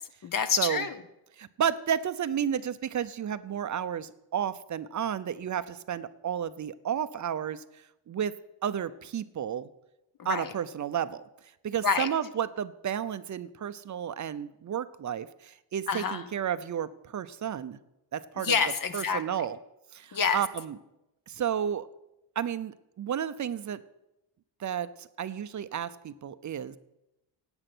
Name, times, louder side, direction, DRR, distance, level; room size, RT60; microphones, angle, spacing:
voice 1, 0.2-0.9 10.2-10.5 11.8-12.1 15.9-16.2 18.4-19.2 20.1-20.4, left 6 dB, 45° left, 10 dB, 1.0 m, -27 dB
voice 2, 1.4-8.3 8.6-9.7 10.2-11.2 11.6-17.8 18.1-18.6 18.9-19.6 19.9-20.8 21.3-21.9 22.4-23.8 24.6-26.8, right 9 dB, 40° right, 13 dB, 0.6 m, -32 dB
17.0 x 8.9 x 6.1 m, 0.90 s
cardioid pair, 150°, 47 cm